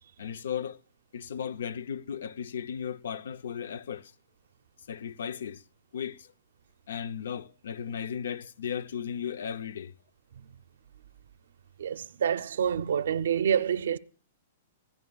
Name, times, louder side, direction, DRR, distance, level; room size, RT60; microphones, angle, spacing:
voice 1, 0.2-0.8 1.1-4.1 4.9-5.6 5.9-6.3 6.9-9.9, left 8 dB, 90° left, 0.6 m, -36 dB
voice 2, 11.8-14.0, right 8 dB, 90° right, 0.5 m, -27 dB
22.0 x 16.0 x 2.3 m
hypercardioid pair, 170°, 0 cm